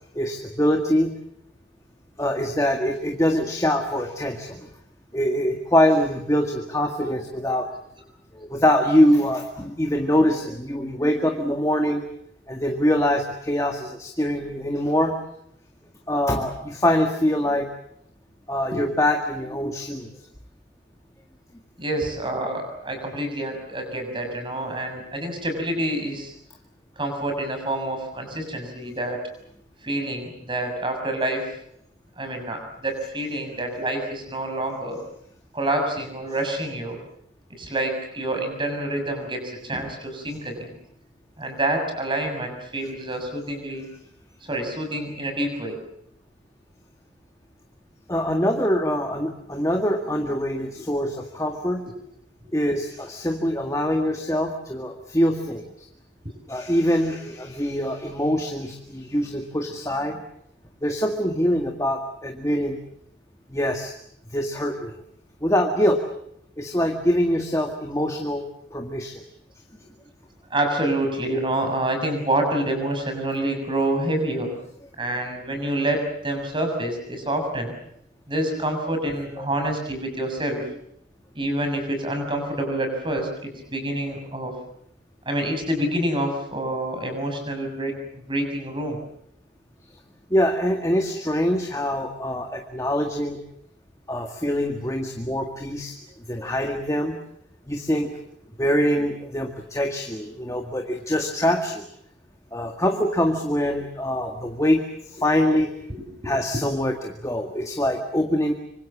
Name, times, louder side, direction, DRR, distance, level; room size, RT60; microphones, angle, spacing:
voice 1, 0.1-1.1 2.2-4.7 5.1-7.7 8.3-12.0 12.5-15.2 16.1-17.7 18.5-20.1 39.7-39.9 48.1-51.8 52.5-55.9 56.5-60.2 60.8-62.8 63.5-63.9 64.3-65.0 65.4-66.0 66.6-68.4 68.7-69.2 79.4-79.5 90.3-93.4 94.1-95.9 96.3-97.2 97.7-98.1 98.6-101.9 102.5-105.7 106.2-108.5, equal, 15° left, 3 dB, 1.9 m, -24 dB
voice 2, 21.8-26.3 27.0-29.3 29.8-31.5 32.2-35.0 35.5-37.0 37.5-40.7 41.4-43.9 44.4-45.8 70.5-74.5 75.0-77.7 78.3-80.6 81.4-84.5 85.3-89.0 105.9-106.3, right 1 dB, 25° right, 5 dB, 6.8 m, -27 dB
25.5 x 25.5 x 7.4 m, 0.72 s
head